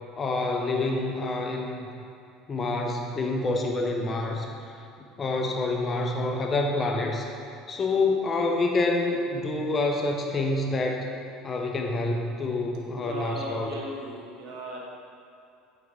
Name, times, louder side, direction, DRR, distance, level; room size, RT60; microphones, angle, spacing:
voice 1, 0.2-1.9 2.5-4.5 5.2-7.3 7.7-11.1 11.4-13.7, left 2 dB, 30° left, 2 dB, 0.7 m, -27 dB
voice 2, 13.0-14.8, right 1 dB, 55° right, -2 dB, 1.3 m, -37 dB
9.2 x 4.3 x 3.6 m, 2.6 s
figure-of-eight pair, 65°, 0 cm